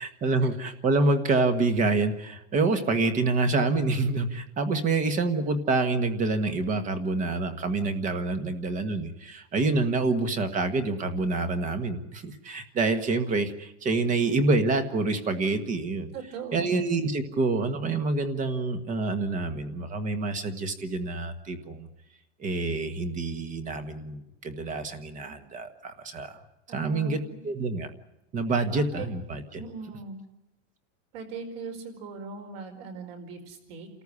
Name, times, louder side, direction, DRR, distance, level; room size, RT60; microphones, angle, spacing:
voice 1, 0.0-16.1 16.5-21.9 22.4-26.4 26.7-27.2 27.4-27.9 28.3-29.6, right 3 dB, 20° right, 9 dB, 1.5 m, -27 dB
voice 2, 16.1-16.8 26.7-27.4 28.7-29.1 29.5-30.2 31.1-33.9, right 5 dB, 50° right, 4 dB, 5.1 m, -40 dB
28.5 x 14.0 x 9.8 m, 0.92 s
supercardioid pair, 165°, 38 cm